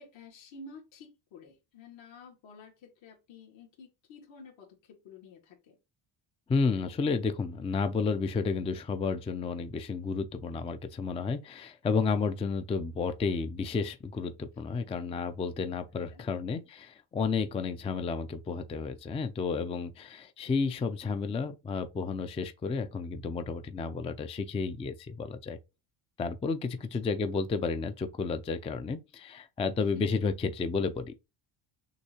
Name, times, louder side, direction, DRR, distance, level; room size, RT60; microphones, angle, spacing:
voice 1, 0.0-5.8 14.7-14.9 16.1-16.2 27.0-27.1 29.9-30.1, left 3 dB, 70° left, 2.1 m, -51 dB
voice 2, 6.5-25.6 26.2-31.2, left 4 dB, 15° left, 0.3 m, -31 dB
6.6 x 2.7 x 2.8 m
cardioid pair, 120°, 48 cm